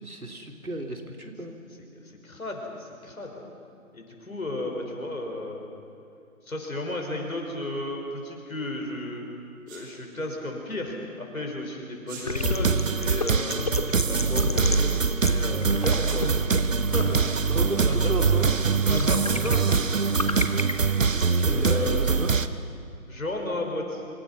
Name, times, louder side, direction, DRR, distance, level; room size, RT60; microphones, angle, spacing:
voice 1, 0.0-1.6 17.5-18.5 21.4-22.4, right 2 dB, 85° right, 2 dB, 3.7 m, -33 dB
voice 2, 2.0-3.4 3.9-5.6 6.4-9.2 9.7-13.6 14.1-16.3 16.8-17.1 17.9-18.1 18.9-19.9 21.5-22.0 23.1-24.0, left 1 dB, 75° left, 1 dB, 6.0 m, -33 dB
Sneeze, 9.7-9.9 12.0-12.3, right 5 dB, 15° right, 2.4 m, -42 dB
sound 1, 12.2-21.4, left 3 dB, 30° left, 0.8 m, -34 dB
sound 2, 12.4-22.5, right 5 dB, 65° right, 1.1 m, -23 dB
26.0 x 25.0 x 5.8 m, 2.5 s
figure-of-eight pair, 155°, 42 cm